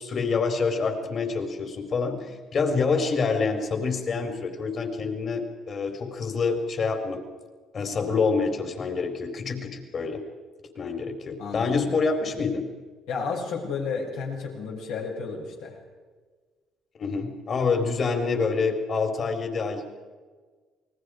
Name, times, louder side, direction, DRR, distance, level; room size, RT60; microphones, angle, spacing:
voice 1, 0.0-7.2 7.7-10.2 10.7-12.6 17.0-19.9, left 4 dB, 50° left, 5 dB, 4.2 m, -27 dB
voice 2, 7.8-8.2 11.4-11.8 13.1-15.8, left 5 dB, 85° left, -3 dB, 6.6 m, -32 dB
28.5 x 20.0 x 5.1 m, 1.4 s
supercardioid pair, 65°, 0 cm